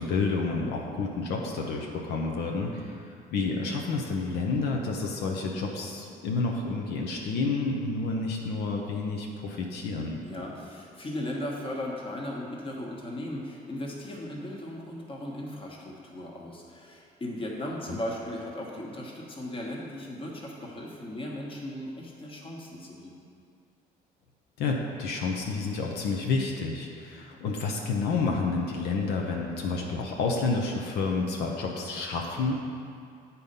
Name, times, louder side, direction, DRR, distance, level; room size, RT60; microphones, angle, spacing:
voice 1, 0.0-10.2 17.9-18.0 24.6-32.5, left 3 dB, 80° left, 0 dB, 0.8 m, -30 dB
voice 2, 10.2-23.1, left 1 dB, 30° left, -2 dB, 1.3 m, -37 dB
8.2 x 4.3 x 5.3 m, 2.4 s
cardioid pair, 110°, 17 cm